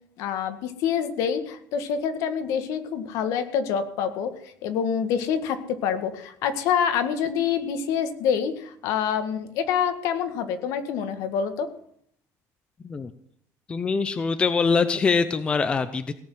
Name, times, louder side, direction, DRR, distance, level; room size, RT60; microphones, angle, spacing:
voice 1, 0.2-11.7, left 7 dB, 65° left, 9 dB, 1.9 m, -26 dB
voice 2, 13.7-16.1, left 5 dB, 15° left, 11 dB, 0.6 m, -23 dB
17.5 x 7.2 x 9.1 m, 0.64 s
cardioid pair, 175°, 6 cm